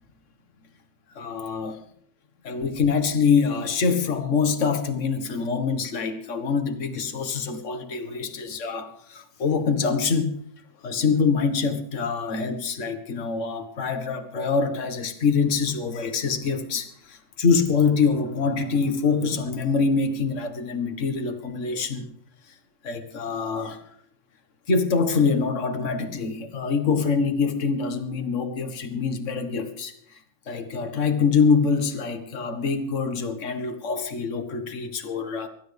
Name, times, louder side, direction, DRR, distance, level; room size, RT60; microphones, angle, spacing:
voice 1, 1.1-1.8 2.4-10.4 10.8-22.1 22.8-23.8 24.7-29.9 30.5-35.5, left 5 dB, 35° left, 7 dB, 1.3 m, -25 dB
24.0 x 12.5 x 3.5 m, 0.66 s
omnidirectional pair, 3.4 m